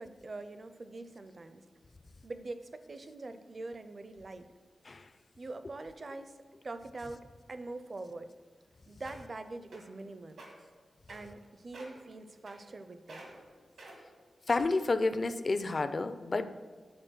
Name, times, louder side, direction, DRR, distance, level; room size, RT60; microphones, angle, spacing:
voice 1, 0.0-1.6 2.2-4.5 5.4-6.3 6.6-8.3 8.9-10.5 11.1-13.2, right 2 dB, 35° right, 10 dB, 0.5 m, -44 dB
sound 1, 8.6-8.7 9.0-9.3 9.7-10.0 10.3-10.5 11.1-11.4 11.7-12.0 12.5-12.8 13.1-13.4 13.8-14.0 14.5-14.9 15.5-15.6, right 2 dB, 85° right, 1.8 m, -49 dB
voice 2, 14.5-16.5, left 3 dB, 35° left, 11 dB, 0.4 m, -30 dB
10.0 x 4.2 x 6.2 m, 1.5 s
wide cardioid pair, 165°, 0 cm